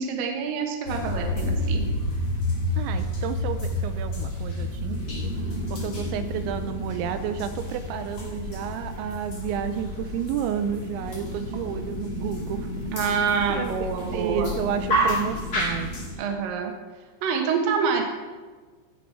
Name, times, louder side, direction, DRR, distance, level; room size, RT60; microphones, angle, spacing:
voice 1, 0.0-1.9 12.9-14.5 16.2-16.7 17.2-18.0, right 6 dB, 65° right, 2 dB, 2.5 m, -26 dB
sound 1, 0.8-16.1, left 1 dB, 35° left, 2.3 m, -30 dB
voice 2, 2.8-5.3 5.7-12.7 13.0-15.9, right 8 dB, 90° right, 9 dB, 2.9 m, -31 dB
15.5 x 6.1 x 4.8 m, 1.4 s
omnidirectional pair, 5.3 m